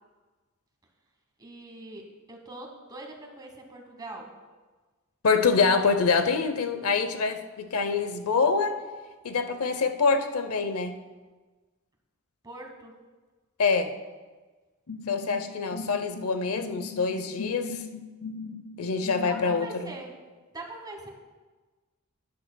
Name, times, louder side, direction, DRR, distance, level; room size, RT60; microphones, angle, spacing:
voice 1, 1.4-4.3 12.4-12.9 19.1-20.2 20.5-21.1, right 2 dB, 20° right, 2 dB, 1.3 m, -42 dB
voice 2, 5.2-8.7 9.2-10.9 13.6-13.9 15.1-17.8 18.8-19.9, left 4 dB, 85° left, 9 dB, 0.7 m, -25 dB
sound 1, 14.9-19.7, left 4 dB, 50° left, 0.5 m, -39 dB
12.0 x 10.5 x 2.2 m, 1.3 s
head